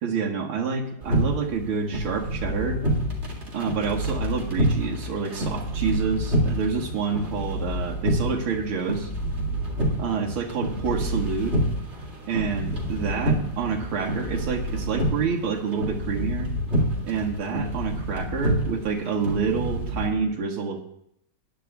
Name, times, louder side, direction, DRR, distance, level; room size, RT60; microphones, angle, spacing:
voice 1, 0.0-2.8 3.5-9.1 10.0-11.6 12.3-16.5 17.0-20.8, right 5 dB, 80° right, 0 dB, 2.2 m, -28 dB
sound 1, 1.0-20.1, equal, 30° right, 2.2 m, -28 dB
20.5 x 10.0 x 2.3 m, 0.73 s
omnidirectional pair, 2.4 m